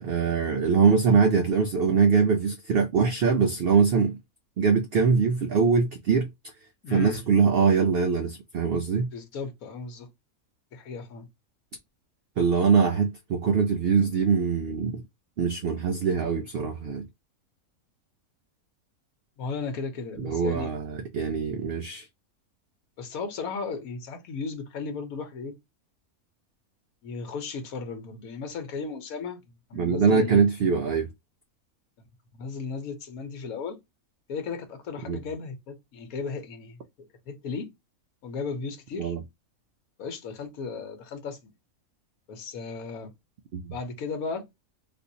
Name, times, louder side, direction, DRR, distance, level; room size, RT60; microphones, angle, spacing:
voice 1, 0.0-4.2 4.6-6.3 6.9-9.1 12.4-15.0 15.4-17.1 20.2-22.0 29.8-31.1 35.1-35.2 39.0-39.2 43.5-43.7, right 5 dB, 70° right, 0.5 m, -23 dB
voice 2, 6.8-7.3 9.1-10.1 10.7-11.3 19.4-20.7 23.0-25.6 27.0-29.4 29.7-30.4 32.3-33.8 34.3-37.7 38.2-39.1 40.0-41.5 42.3-43.1 43.7-44.5, left 4 dB, 75° left, 1.2 m, -35 dB
3.6 x 2.5 x 2.7 m
omnidirectional pair, 1.5 m